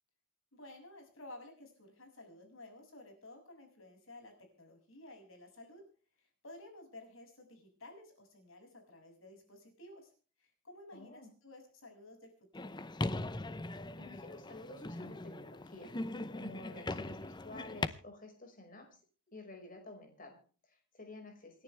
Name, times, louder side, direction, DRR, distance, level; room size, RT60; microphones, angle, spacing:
voice 1, 0.5-5.8 6.2-10.1 10.4-12.7, left 1 dB, 80° left, 3 dB, 6.7 m, -54 dB
voice 2, 10.9-11.3 13.7-15.9 16.3-19.0 19.3-21.6, left 2 dB, 45° left, 4 dB, 5.2 m, -51 dB
sound 1, 12.5-17.9, left 2 dB, 20° left, 0.7 m, -40 dB
28.0 x 10.5 x 3.4 m, 0.39 s
head